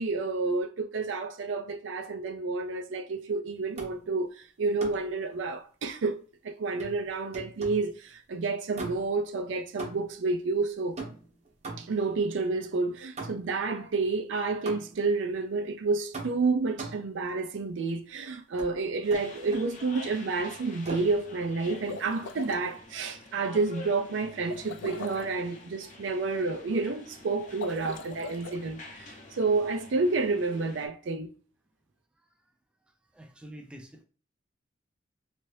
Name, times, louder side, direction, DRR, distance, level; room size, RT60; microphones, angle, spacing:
voice 1, 0.0-11.0 11.8-31.3, right 3 dB, 80° right, 0.4 m, -30 dB
sound 1, 3.8-4.1 4.8-5.2 6.8-7.9 8.7-9.3 9.8-10.3 11.0-12.1 13.2-13.6 14.7-15.1 16.1-17.2 18.6-18.8 19.1-19.8 20.8-21.2, right 3 dB, 40° right, 0.7 m, -40 dB
sound 2, 19.0-30.9, left 2 dB, 40° left, 0.6 m, -48 dB
sound 3, 21.7-22.6 24.5-25.4 27.5-28.6, left 3 dB, 90° left, 0.4 m, -40 dB
voice 2, 32.9-34.0, equal, 5° right, 0.3 m, -48 dB
2.9 x 2.6 x 3.1 m
head